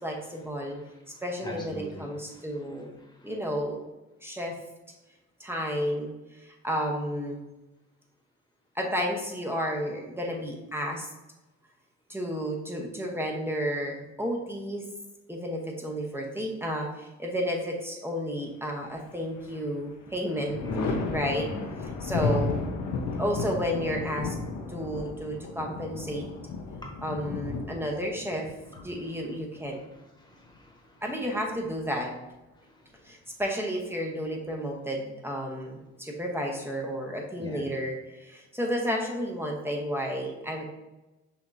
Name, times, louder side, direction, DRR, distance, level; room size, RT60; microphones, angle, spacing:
voice 1, 0.0-0.8 1.2-3.0 3.2-3.8 4.2-4.5 5.4-6.1 6.4-7.4 8.7-11.1 12.1-14.8 15.3-20.6 21.1-21.5 22.0-22.5 23.2-24.3 24.7-26.3 27.0-28.5 28.8-29.8 31.0-32.1 33.0-40.6, equal, 10° right, 0 dB, 0.8 m, -32 dB
voice 2, 0.6-2.4 3.2-3.3 20.6-21.0 21.4-21.7 30.2-31.0 37.4-37.6, equal, 15° left, -1 dB, 1.2 m, -40 dB
Thunder, 18.9-19.6 20.0-29.6 31.1-31.9, left 4 dB, 75° left, 0.7 m, -33 dB
5.8 x 2.9 x 2.6 m, 1.0 s
cardioid pair, 90°, 30 cm